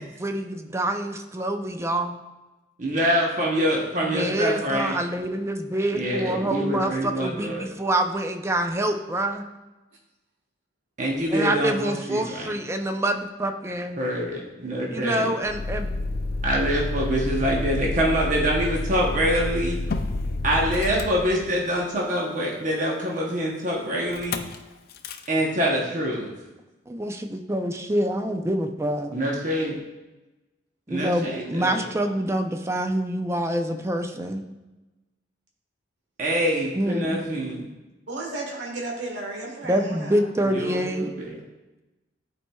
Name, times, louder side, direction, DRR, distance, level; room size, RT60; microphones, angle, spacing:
voice 1, 0.0-2.2 4.0-9.4 11.3-14.0 14.9-15.9 26.9-29.2 30.9-34.4 36.7-37.2 39.6-41.1, right 1 dB, 15° right, 5 dB, 0.5 m, -26 dB
voice 2, 2.8-5.0 5.9-7.6 11.0-12.5 14.0-15.3 16.4-19.8 20.4-24.4 25.3-26.3 29.1-29.8 30.9-31.9 36.2-37.6 40.5-41.4, equal, 45° right, -2 dB, 0.9 m, -25 dB
Motor vehicle (road), 15.4-21.9 24.1-24.6 24.9-25.3, left 2 dB, 55° left, 0.5 m, -29 dB
voice 3, 28.2-28.6 38.1-40.3, right 2 dB, 90° right, -2 dB, 1.5 m, -34 dB
12.0 x 4.3 x 2.3 m, 1.1 s
head